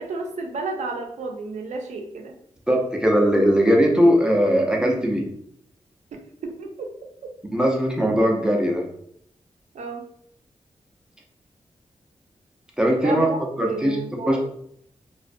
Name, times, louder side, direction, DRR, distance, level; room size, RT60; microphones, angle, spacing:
voice 1, 0.0-2.3 6.1-6.7 9.7-10.0 13.0-14.4, right 3 dB, 90° right, 3 dB, 0.4 m, -31 dB
voice 2, 2.7-5.2 7.5-8.8 12.8-13.3 13.6-14.0 14.3-14.4, equal, 5° right, 0 dB, 0.5 m, -19 dB
2.5 x 2.1 x 2.5 m, 0.70 s
wide cardioid pair, 105°, 12 cm